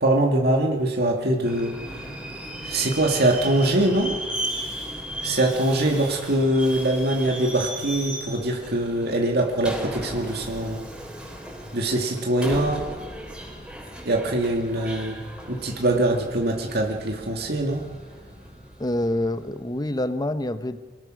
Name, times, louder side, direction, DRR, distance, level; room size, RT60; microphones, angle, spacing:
voice 1, 0.0-1.7 2.6-4.1 5.2-10.8 11.7-12.8 14.1-15.2 15.5-17.8, right 1 dB, 60° right, 1 dB, 2.3 m, -23 dB
Subway metro underground, 1.4-19.9, right 1 dB, 5° right, 4.4 m, -36 dB
voice 2, 18.8-20.8, left 1 dB, 20° left, 11 dB, 1.0 m, -26 dB
25.0 x 19.0 x 6.4 m, 1.4 s
head